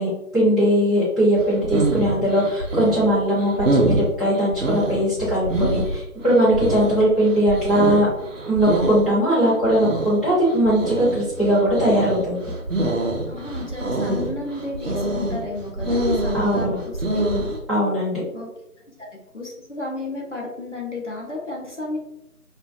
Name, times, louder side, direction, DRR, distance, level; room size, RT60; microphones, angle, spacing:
voice 1, 0.0-8.1 8.4-12.5 16.3-16.8 17.7-18.2, equal, ahead, -14 dB, 0.7 m, -20 dB
sound 1, 1.4-17.6, right 1 dB, 60° right, 0.5 m, -25 dB
voice 2, 13.2-17.3 18.3-18.5 19.3-22.0, left 2 dB, 50° left, -3 dB, 0.6 m, -32 dB
2.6 x 2.1 x 2.4 m, 0.87 s
figure-of-eight pair, 170°, 46 cm